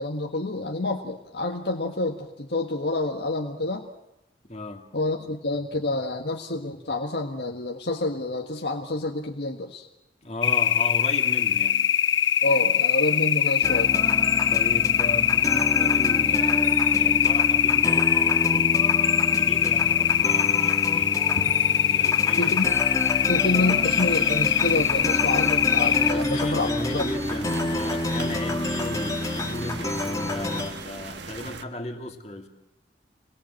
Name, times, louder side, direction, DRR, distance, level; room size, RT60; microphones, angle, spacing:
voice 1, 0.0-3.9 4.9-9.9 12.4-13.9 21.4-21.5 22.4-22.7 23.3-27.1, left 2 dB, 60° left, 1 dB, 1.6 m, -28 dB
voice 2, 4.4-4.9 10.2-11.9 14.5-21.3 21.9-22.6 25.9-32.5, left 1 dB, 35° left, 3 dB, 2.5 m, -36 dB
sound 1, 10.4-26.1, left 9 dB, 80° left, 0.9 m, -22 dB
sound 2, 13.6-30.7, left 1 dB, 20° left, 1.7 m, -29 dB
sound 3, 19.4-31.6, right 4 dB, 70° right, 1.3 m, -40 dB
27.0 x 21.0 x 7.7 m, 0.87 s
head